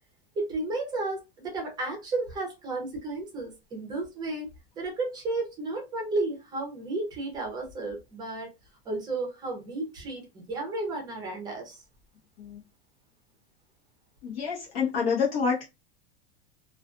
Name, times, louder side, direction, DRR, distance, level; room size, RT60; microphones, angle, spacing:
voice 1, 0.4-4.5 4.8-8.5 8.8-11.8, right 2 dB, 10° right, 1 dB, 0.6 m, -33 dB
voice 2, 14.2-15.6, left 5 dB, 60° left, -3 dB, 0.9 m, -27 dB
2.4 x 2.4 x 2.4 m, 0.24 s
supercardioid pair, 170°, 32 cm